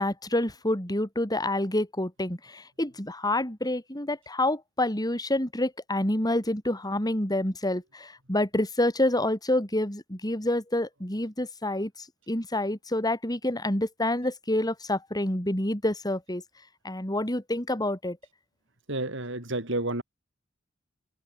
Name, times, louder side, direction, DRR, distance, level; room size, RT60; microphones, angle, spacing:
voice 1, 0.0-11.9 12.3-16.4 16.8-18.2, left 1 dB, 20° left, 4.9 m, -28 dB
voice 2, 18.9-20.0, right 2 dB, 65° right, 7.3 m, -30 dB
head